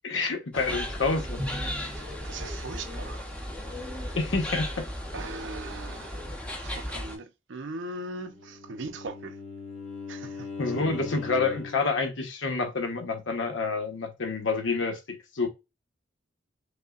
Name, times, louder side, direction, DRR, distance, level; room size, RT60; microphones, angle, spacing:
voice 1, 0.0-1.4 4.1-4.8 6.9-7.0 10.6-15.5, left 4 dB, 85° left, 0.9 m, -28 dB
sound 1, 0.5-7.2, equal, 5° left, 0.7 m, -35 dB
Drum, 1.4-3.1, equal, 55° left, 1.8 m, -40 dB
voice 2, 1.9-3.3 5.1-6.3 6.6-9.4 10.1-10.5, right 3 dB, 75° right, 0.6 m, -39 dB
Bowed string instrument, 8.3-11.9, left 4 dB, 35° left, 0.8 m, -39 dB
5.3 x 2.1 x 2.4 m
head